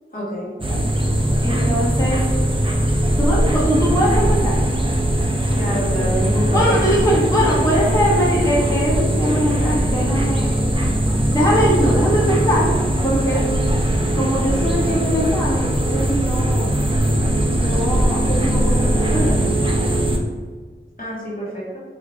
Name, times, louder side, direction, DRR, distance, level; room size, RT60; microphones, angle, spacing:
voice 1, 0.1-0.5 5.5-6.9 21.0-21.8, equal, 45° left, -8 dB, 1.4 m, -27 dB
sound 1, 0.6-20.2, right 1 dB, 25° right, 0.5 m, -20 dB
voice 2, 0.7-1.0 1.4-2.2 3.2-4.6 6.5-10.7 11.3-12.7 13.0-13.4 14.1-16.7 17.5-19.4, equal, 15° left, -9 dB, 1.2 m, -21 dB
sound 2, 2.8-14.8, equal, 65° right, 1.1 m, -32 dB
4.9 x 2.7 x 2.4 m, 1.5 s
wide cardioid pair, 45°, 21 cm